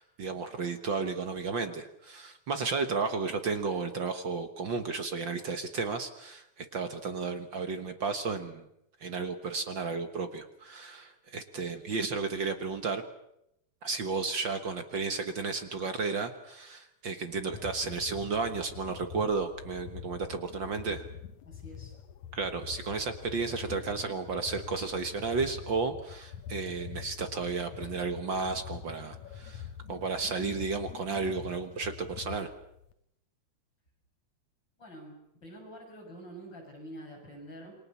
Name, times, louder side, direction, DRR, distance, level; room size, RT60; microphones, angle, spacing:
voice 1, 0.0-8.7 9.0-13.0 13.8-21.1 22.3-32.5, right 4 dB, 50° right, 8 dB, 1.7 m, -33 dB
sound 1, 17.3-32.9, left 9 dB, 75° left, 2.5 m, -45 dB
voice 2, 21.4-21.9 34.8-37.7, right 1 dB, 35° left, 0 dB, 8.2 m, -47 dB
28.5 x 23.0 x 7.2 m, 0.81 s
omnidirectional pair, 3.3 m